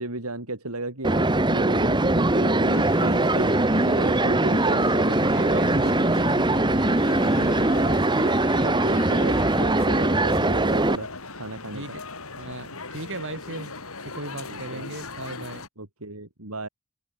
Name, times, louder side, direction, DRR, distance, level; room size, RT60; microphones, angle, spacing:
voice 1, 0.0-5.3 7.4-11.1 11.4-11.9 14.5-14.9 15.8-16.7, right 2 dB, 75° right, 4.0 m, -34 dB
sound 1, 1.0-11.0, right 2 dB, 20° right, 1.5 m, -21 dB
sound 2, 2.7-15.7, left 3 dB, 70° left, 7.2 m, -38 dB
voice 2, 5.3-7.0 11.7-12.0 12.4-13.7 14.0-15.6, right 2 dB, 55° right, 7.3 m, -37 dB
head